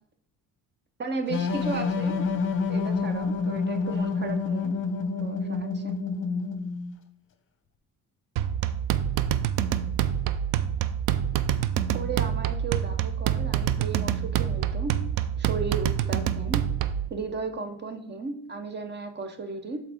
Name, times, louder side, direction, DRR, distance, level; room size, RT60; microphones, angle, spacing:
voice 1, 1.0-2.4 2.7-4.7 5.2-5.9 11.9-14.9 15.4-16.6 17.1-19.8, right 4 dB, 35° right, 8 dB, 0.9 m, -35 dB
sound 1, 1.3-6.9, left 4 dB, 40° left, 0.8 m, -28 dB
sound 2, 8.4-17.1, right 10 dB, 75° right, 0.5 m, -26 dB
7.8 x 4.2 x 3.6 m, 0.70 s
cardioid pair, 115°, 33 cm